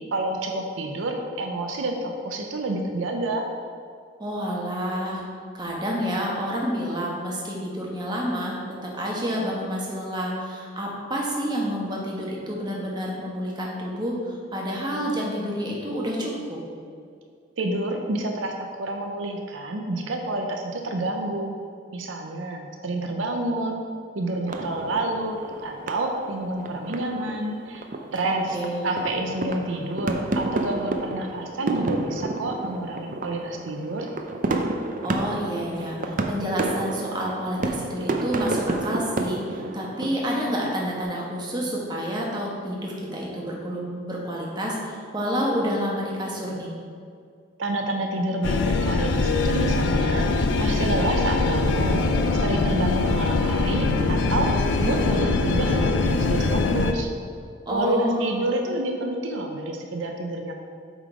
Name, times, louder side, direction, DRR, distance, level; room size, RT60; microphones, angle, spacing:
voice 1, 0.1-3.5 17.6-21.6 21.9-23.8 24.1-25.4 25.6-27.8 28.1-28.6 28.8-34.1 47.6-50.3 50.6-52.0 52.3-54.5 54.8-57.1 57.7-60.5, right 2 dB, 80° right, 3 dB, 0.7 m, -28 dB
voice 2, 4.2-5.2 5.5-16.6 28.2-29.0 35.0-46.7 57.7-58.5, equal, 20° right, -3 dB, 1.2 m, -29 dB
sound 1, 24.5-41.0, right 2 dB, 40° right, 0.5 m, -31 dB
sound 2, 48.4-56.9, left 3 dB, 65° left, 0.5 m, -22 dB
8.0 x 3.9 x 5.0 m, 2.2 s
head